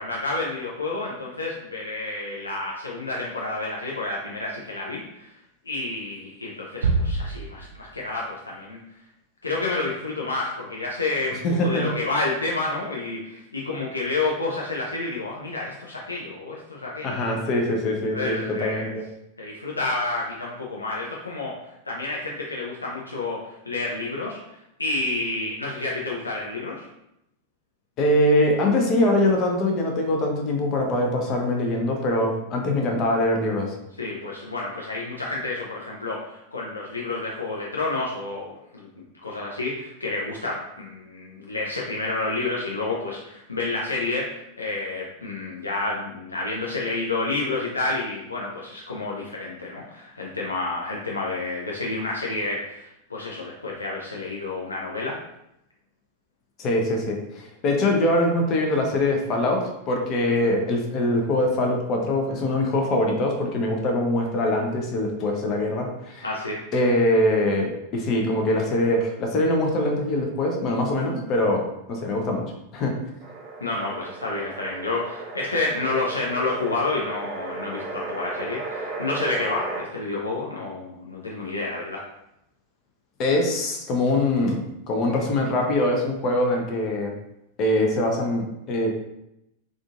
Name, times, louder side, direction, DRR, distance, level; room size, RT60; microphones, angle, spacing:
voice 1, 0.0-5.3 5.7-8.8 9.4-17.4 18.1-18.9 19.4-21.6 21.9-24.4 24.8-26.9 34.0-38.9 39.2-55.2 66.2-66.6 73.6-82.0, left 2 dB, 80° left, -3 dB, 0.4 m, -29 dB
sound 1, 6.8-8.2, right 3 dB, 70° right, 0.4 m, -26 dB
voice 2, 11.4-11.9 17.0-19.0 28.0-33.7 56.6-66.3 66.7-71.6 71.9-72.4 72.7-72.9 83.2-84.6 84.9-87.1 87.6-88.9, left 1 dB, 35° left, 1 dB, 0.6 m, -23 dB
sound 2, 73.2-79.8, right 3 dB, 20° right, 0.9 m, -35 dB
3.6 x 2.5 x 2.4 m, 0.83 s
figure-of-eight pair, 90°, 0 cm